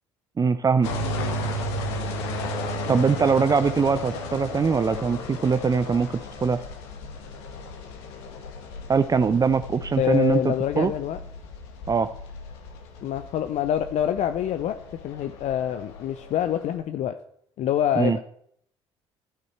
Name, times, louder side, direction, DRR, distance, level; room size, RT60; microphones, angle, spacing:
voice 1, 0.4-0.9 2.9-6.1 6.4-6.6 8.9-10.9 11.9-12.1 18.0-18.2, right 5 dB, 25° right, 12 dB, 0.6 m, -22 dB
sound 1, 0.8-16.8, left 1 dB, 75° left, 1.7 m, -35 dB
voice 2, 10.0-11.2 13.0-14.8 15.0-17.1 17.6-18.2, left 10 dB, 55° left, 10 dB, 0.7 m, -26 dB
12.0 x 9.1 x 4.6 m, 0.67 s
hypercardioid pair, 55°, 14 cm